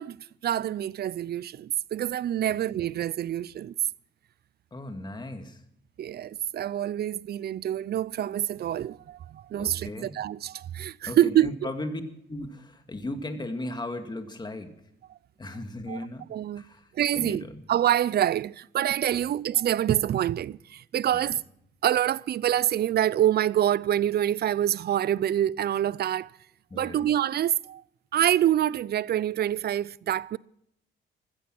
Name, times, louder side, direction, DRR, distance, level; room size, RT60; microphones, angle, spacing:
voice 1, 0.0-3.7 6.0-11.5 15.9-16.6 16.9-21.4 21.8-26.3 26.7-27.8 28.1-30.4, right 11 dB, 55° right, 0.5 m, -26 dB
voice 2, 4.7-5.6 9.6-10.2 11.1-12.0 12.3-14.7 15.4-16.3 16.6-16.9 17.1-17.6 19.1-19.3 21.1-21.3 26.7-27.0, left 1 dB, 20° left, 2.1 m, -36 dB
15.0 x 14.5 x 6.1 m
cardioid pair, 90°, 20 cm